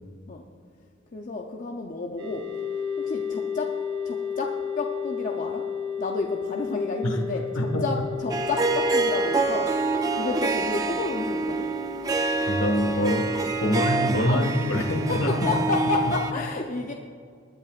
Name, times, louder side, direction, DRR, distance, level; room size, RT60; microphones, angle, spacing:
voice 1, 1.1-2.5 3.0-3.7 4.0-5.6 6.0-9.7 10.1-11.7 13.6-13.8 14.3-14.5 14.7-16.9, left 3 dB, 40° left, 1 dB, 0.7 m, -31 dB
sound 1, 2.2-16.1, left 7 dB, 75° right, 2.8 m, -34 dB
Harp, 8.3-16.3, right 3 dB, 20° right, 0.6 m, -27 dB
voice 2, 12.5-13.3 13.6-15.7, equal, 65° left, 4 dB, 1.6 m, -25 dB
20.5 x 10.5 x 2.5 m, 2.2 s
head